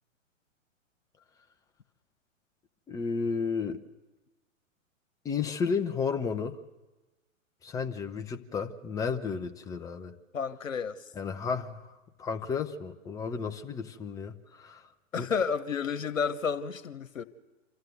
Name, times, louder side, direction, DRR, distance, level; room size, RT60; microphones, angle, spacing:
voice 1, 2.9-3.8 5.2-6.6 7.6-10.2 11.2-11.9 12.2-14.8 15.2-15.3, left 5 dB, 10° left, 0.6 m, -32 dB
voice 2, 10.3-11.1 15.1-17.2, left 6 dB, 80° left, 1.3 m, -31 dB
27.0 x 14.0 x 8.2 m
figure-of-eight pair, 115°, 39 cm